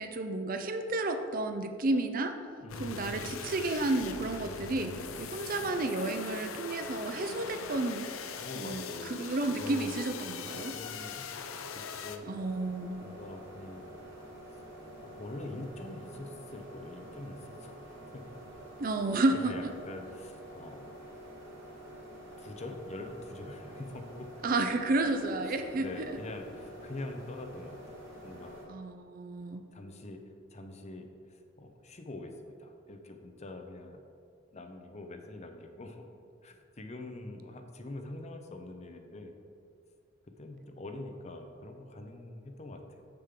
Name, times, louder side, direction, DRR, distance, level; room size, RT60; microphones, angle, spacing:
voice 1, 0.0-2.3 2.8-8.1 8.6-8.8 9.1-10.7 12.3-13.0 18.8-19.5 24.4-26.1 28.7-29.6, right 2 dB, 45° right, 7 dB, 0.5 m, -31 dB
voice 2, 2.6-3.2 8.4-9.1 9.5-10.1 10.4-12.2 13.0-13.9 14.5-14.6 15.0-17.8 18.3-18.4 18.9-19.0 19.3-20.8 22.4-24.3 25.5-27.8 28.2-28.6 29.7-30.2 30.5-34.0 34.5-36.0 36.4-39.3 40.4-43.0, left 2 dB, 35° left, 5 dB, 0.6 m, -44 dB
sound 1, 2.7-12.2, left 6 dB, 80° left, 0.5 m, -41 dB
sound 2, 12.2-28.6, right 1 dB, 60° right, 1.5 m, -48 dB
7.2 x 6.7 x 3.7 m, 2.4 s
head